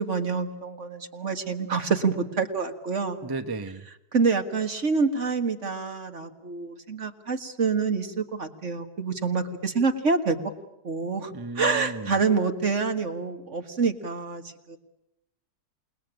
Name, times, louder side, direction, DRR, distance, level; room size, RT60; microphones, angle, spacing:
voice 1, 0.0-3.2 4.1-10.4 10.8-14.8, right 4 dB, 50° right, 7 dB, 2.0 m, -27 dB
voice 2, 3.2-3.8 11.3-12.2, right 3 dB, 20° right, 9 dB, 0.7 m, -34 dB
28.5 x 20.0 x 8.9 m, 0.89 s
omnidirectional pair, 1.7 m